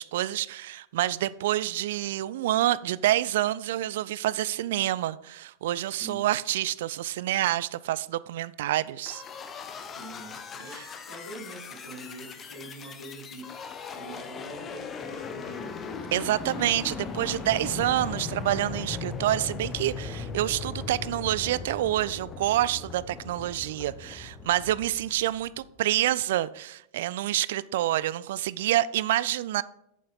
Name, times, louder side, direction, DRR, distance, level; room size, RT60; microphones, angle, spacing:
voice 1, 0.0-9.2 16.1-29.6, right 14 dB, 55° right, 0.3 m, -27 dB
sound 1, 9.0-25.7, left 5 dB, 25° left, 0.8 m, -38 dB
voice 2, 9.8-10.8 11.1-15.8, right 1 dB, 75° left, 3.1 m, -44 dB
8.4 x 7.3 x 4.0 m
figure-of-eight pair, 90°, 0 cm